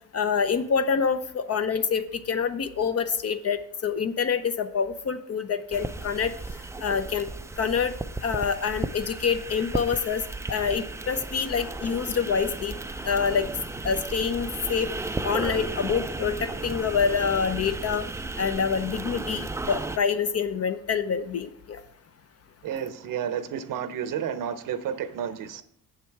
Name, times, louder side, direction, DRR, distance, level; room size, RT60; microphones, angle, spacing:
voice 1, 0.1-6.3 6.8-7.3 7.6-7.9 8.2-10.2 10.5-12.8 13.0-13.5 13.8-14.9 15.2-18.1 18.4-21.8, left 6 dB, 45° left, 10 dB, 0.7 m, -26 dB
sound 1, 5.7-20.0, right 2 dB, 10° right, 0.4 m, -34 dB
voice 2, 22.6-25.6, right 8 dB, 65° right, 12 dB, 0.8 m, -31 dB
7.4 x 7.3 x 4.6 m, 0.73 s
cardioid pair, 85°, 35 cm